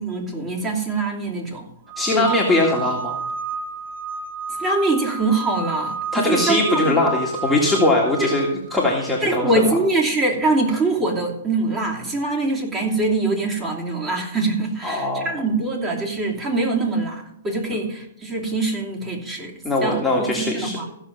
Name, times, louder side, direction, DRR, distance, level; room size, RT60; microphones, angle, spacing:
voice 1, 0.0-1.6 2.1-2.2 4.6-7.0 9.2-19.5 19.8-20.0 20.4-20.8, right 2 dB, 20° right, -2 dB, 2.9 m, -23 dB
sound 1, 1.9-9.7, right 3 dB, 70° right, 1.3 m, -31 dB
voice 2, 2.0-3.2 6.1-9.8 14.8-15.3 19.6-20.8, left 2 dB, 5° left, -5 dB, 1.9 m, -21 dB
15.5 x 6.5 x 5.5 m, 0.74 s
hypercardioid pair, 145°, 0 cm